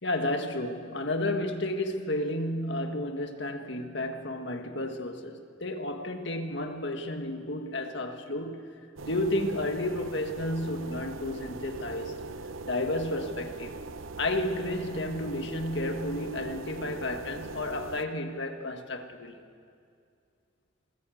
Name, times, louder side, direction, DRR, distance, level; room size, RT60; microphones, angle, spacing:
voice 1, 0.0-8.6 9.0-12.2 12.6-13.7 14.2-19.4, left 1 dB, 60° left, 1.9 m, -32 dB
sound 1, 9.0-18.0, right 3 dB, 75° right, 0.8 m, -41 dB
27.5 x 20.0 x 7.9 m
head